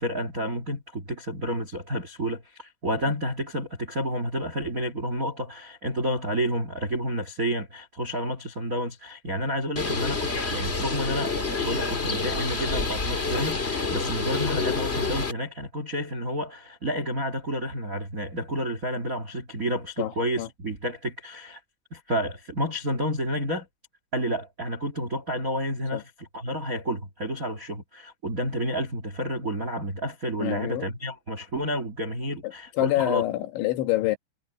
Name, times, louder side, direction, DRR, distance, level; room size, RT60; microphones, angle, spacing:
voice 1, 0.0-11.3 11.6-21.6 21.9-23.7 24.1-33.2, equal, 50° right, 0.9 m, -30 dB
Bird, 9.8-15.3, left 4 dB, 30° left, 1.1 m, -28 dB
voice 2, 20.0-20.5 25.9-26.0 30.4-30.9 32.4-34.2, left 15 dB, 90° left, 4.0 m, -27 dB
omnidirectional pair, 5.2 m